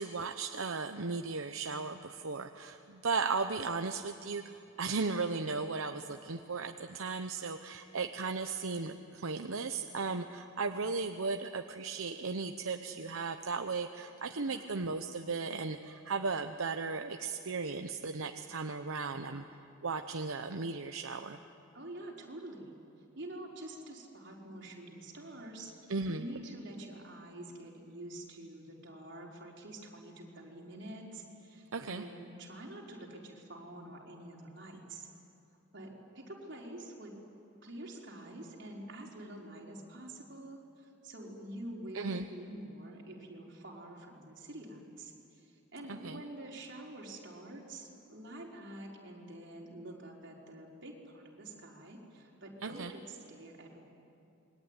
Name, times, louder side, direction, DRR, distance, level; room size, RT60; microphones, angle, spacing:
voice 1, 0.0-19.4 19.8-21.4 25.9-26.3 31.7-32.0 41.9-42.2 45.9-46.2 52.6-52.9, right 4 dB, 80° right, 6 dB, 0.9 m, -36 dB
voice 2, 14.4-14.7 21.7-22.7 23.2-25.7 26.1-35.1 35.7-37.1 37.6-53.8, right 1 dB, 55° right, -2 dB, 4.6 m, -47 dB
27.0 x 22.5 x 9.8 m, 2.7 s
head